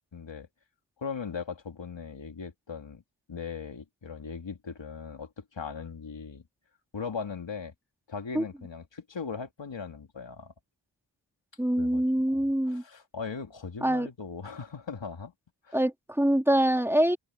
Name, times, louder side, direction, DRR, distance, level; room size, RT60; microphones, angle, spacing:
voice 1, 0.1-0.5 1.0-3.0 3.3-6.4 6.9-7.7 8.1-10.5 11.8-12.0 12.3-15.3 15.6-15.8, left 5 dB, 75° left, 3.0 m, -39 dB
voice 2, 11.6-12.8 13.8-14.1 15.7-17.2, right 1 dB, 5° right, 2.9 m, -24 dB
open air
wide cardioid pair, 60°, 45 cm